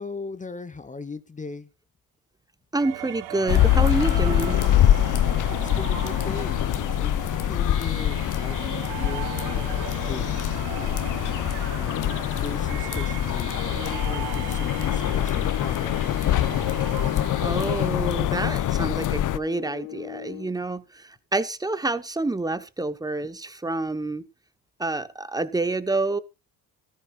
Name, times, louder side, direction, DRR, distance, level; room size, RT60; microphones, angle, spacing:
voice 1, 0.0-1.7 5.5-9.7 10.0-10.3 10.7-11.0 11.7-16.1, left 4 dB, 20° left, 11 dB, 1.1 m, -38 dB
voice 2, 2.7-4.6 17.4-24.2 24.8-26.2, right 2 dB, 10° right, 13 dB, 1.2 m, -28 dB
sound 1, 2.8-17.9, right 16 dB, 75° right, 1.0 m, -38 dB
sound 2, 3.5-19.4, left 12 dB, 50° left, 0.9 m, -24 dB
sound 3, 13.5-20.6, left 21 dB, 90° left, 1.0 m, -39 dB
15.0 x 14.0 x 2.5 m, 0.27 s
cardioid pair, 95°, 38 cm